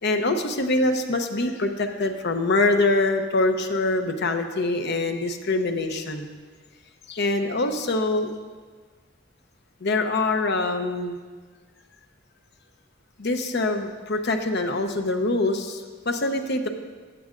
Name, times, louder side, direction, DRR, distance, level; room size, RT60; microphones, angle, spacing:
voice 1, 0.0-6.3 7.1-8.3 9.8-11.2 13.2-16.7, left 2 dB, 60° left, 6 dB, 0.8 m, -24 dB
14.5 x 9.4 x 2.5 m, 1.5 s
head